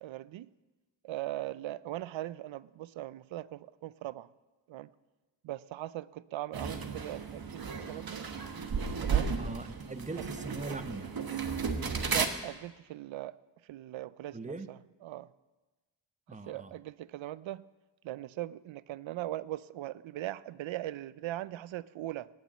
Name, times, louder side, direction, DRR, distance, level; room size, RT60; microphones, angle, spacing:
voice 1, 0.0-0.5 1.0-4.3 4.7-4.9 5.4-8.2 9.0-9.3 12.1-13.3 13.7-15.3 16.5-17.6 18.0-22.3, right 14 dB, 85° right, 19 dB, 0.5 m, -40 dB
sound 1, 6.5-12.3, right 6 dB, 50° right, 1.3 m, -34 dB
voice 2, 9.4-11.1 14.3-14.7 16.3-16.7, right 3 dB, 15° right, 11 dB, 0.8 m, -41 dB
18.0 x 7.2 x 7.4 m, 1.2 s
cardioid pair, 75°, 45 cm